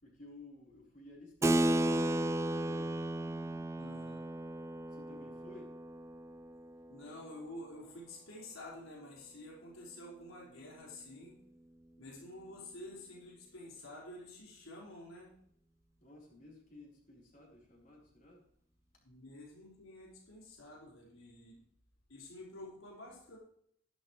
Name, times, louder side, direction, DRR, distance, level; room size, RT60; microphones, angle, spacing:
voice 1, 0.0-3.6 4.9-5.8 16.0-18.4, left 2 dB, 40° left, -2 dB, 4.0 m, -55 dB
Keyboard (musical), 1.4-7.4, right 1 dB, 15° right, 0.3 m, -34 dB
voice 2, 3.8-4.3 6.9-11.4 12.0-15.3 19.0-21.6 22.1-23.4, left 1 dB, 80° left, -3 dB, 4.8 m, -50 dB
13.0 x 12.0 x 3.2 m, 0.67 s
head